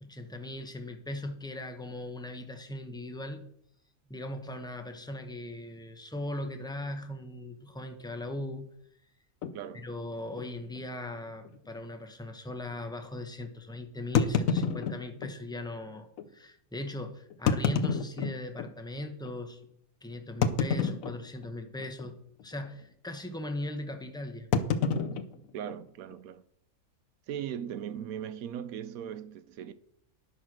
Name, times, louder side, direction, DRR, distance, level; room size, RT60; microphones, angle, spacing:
voice 1, 0.0-3.5 4.1-8.7 9.8-19.6 20.0-22.2 22.4-24.5, left 1 dB, 5° left, 0.6 m, -39 dB
sound 1, 9.4-9.6 10.3-10.5 10.8-10.9 11.5-11.6 14.1-15.4 16.2-16.3 17.3-18.7 19.3-19.4 20.4-21.5 21.8-22.1 22.4-22.7 24.5-26.1, left 6 dB, 70° left, 1.1 m, -29 dB
voice 2, 9.5-9.9 25.5-26.4 27.3-29.7, right 9 dB, 80° right, 1.1 m, -38 dB
9.8 x 6.3 x 6.0 m
omnidirectional pair, 1.5 m